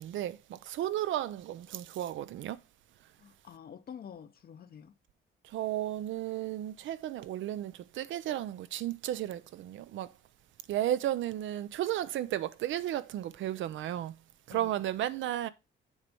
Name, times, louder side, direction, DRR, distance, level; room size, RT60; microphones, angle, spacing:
voice 1, 0.0-2.6 5.5-10.1 10.7-14.2 14.5-15.5, right 12 dB, 75° right, 0.5 m, -34 dB
voice 2, 3.2-4.9 14.5-14.8, left 8 dB, 50° left, 0.7 m, -48 dB
7.2 x 3.2 x 5.2 m
cardioid pair, 90°, 20 cm